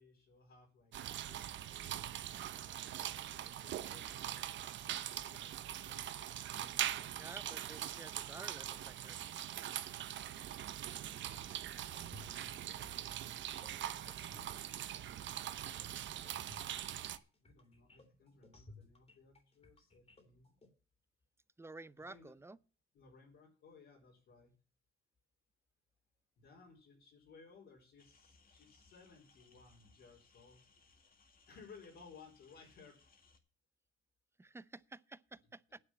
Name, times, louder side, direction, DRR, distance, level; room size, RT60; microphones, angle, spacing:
voice 1, 0.0-2.2 2.9-6.2 11.1-11.7 12.3-12.8 13.7-14.8 17.4-20.5 22.0-22.3 22.9-24.5 26.4-30.7 31.5-33.0, left 4 dB, 70° left, 4.3 m, -61 dB
sound 1, 0.9-17.2, right 11 dB, 70° right, 0.8 m, -42 dB
voice 2, 7.1-9.2 21.6-22.6 34.4-35.8, right 2 dB, 15° right, 0.6 m, -52 dB
sound 2, 12.0-20.7, left 2 dB, 30° left, 3.2 m, -59 dB
sound 3, 28.0-33.4, left 4 dB, 45° left, 2.2 m, -68 dB
9.7 x 7.4 x 7.4 m
cardioid pair, 90°, 20 cm